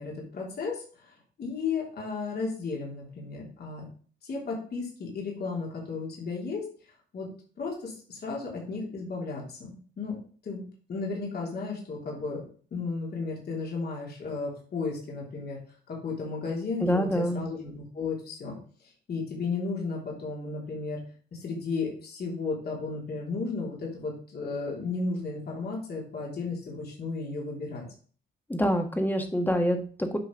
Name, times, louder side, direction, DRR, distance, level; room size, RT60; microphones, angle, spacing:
voice 1, 0.0-3.8 4.2-6.6 7.1-7.3 7.6-10.1 10.4-10.6 10.9-12.4 12.7-15.6 15.9-18.6 18.8-21.0 21.3-27.8, left 4 dB, 50° left, -3 dB, 3.1 m, -34 dB
voice 2, 16.8-17.4 28.5-30.2, equal, 10° left, 5 dB, 1.6 m, -26 dB
9.0 x 5.4 x 3.9 m, 0.43 s
cardioid pair, 90°, 20 cm